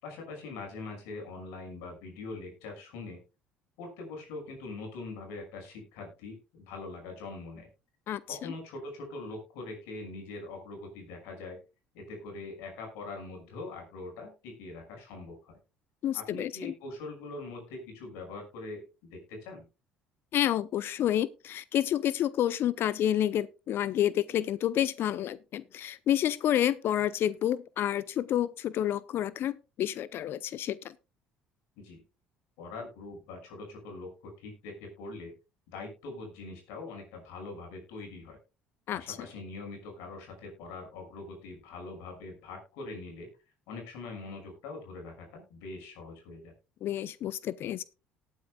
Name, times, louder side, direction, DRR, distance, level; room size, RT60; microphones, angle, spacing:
voice 1, 0.0-3.2 3.8-7.7 8.3-11.6 11.9-15.6 16.1-19.6 31.8-32.0 32.6-35.3 35.7-38.4 38.9-43.3 43.7-46.5, left 3 dB, 70° left, 6.0 m, -43 dB
voice 2, 8.1-8.5 16.0-16.7 20.3-30.9 38.9-39.2 46.8-47.8, left 11 dB, 55° left, 0.6 m, -29 dB
19.0 x 9.2 x 2.3 m
hypercardioid pair, 60°, 5 cm